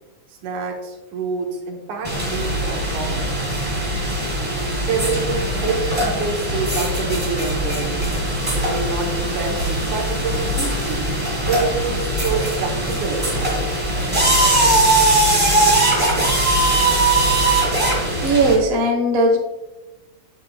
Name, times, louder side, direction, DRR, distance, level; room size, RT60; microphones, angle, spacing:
voice 1, 0.4-3.4 4.5-8.1 8.5-11.0 11.5-13.6, right 4 dB, 80° right, 1 dB, 2.6 m, -27 dB
sound 1, 2.0-18.5, right 1 dB, 15° right, 1.2 m, -20 dB
voice 2, 18.2-19.4, right 1 dB, 65° right, 0 dB, 0.6 m, -17 dB
8.2 x 7.3 x 2.3 m, 1.1 s
omnidirectional pair, 3.4 m